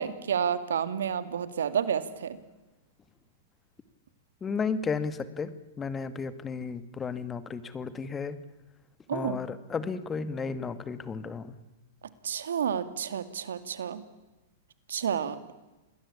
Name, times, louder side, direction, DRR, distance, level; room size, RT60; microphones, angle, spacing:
voice 1, 0.0-2.4 9.1-9.4 12.2-14.0 14.9-15.4, right 8 dB, 80° right, 13 dB, 2.4 m, -30 dB
voice 2, 4.4-5.5 5.8-8.4 9.1-11.5, left 5 dB, 20° left, 13 dB, 2.1 m, -33 dB
28.0 x 21.0 x 8.6 m, 1.1 s
hypercardioid pair, 120°, 0 cm